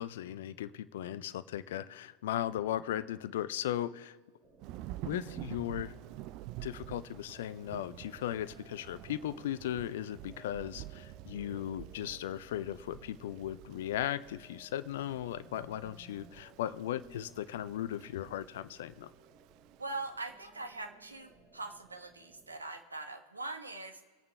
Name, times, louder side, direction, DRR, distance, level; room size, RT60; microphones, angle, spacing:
voice 1, 0.0-4.2 5.0-5.9 6.6-19.1, left 11 dB, 55° left, 14 dB, 0.5 m, -37 dB
sound 1, 4.4-22.6, right 3 dB, 20° right, 1.6 m, -60 dB
Thunder / Rain, 4.6-20.2, right 15 dB, 40° right, 0.3 m, -49 dB
voice 2, 19.8-24.0, right 3 dB, 80° right, 4 dB, 1.4 m, -42 dB
25.0 x 8.6 x 3.4 m, 1.4 s
figure-of-eight pair, 90°, 0 cm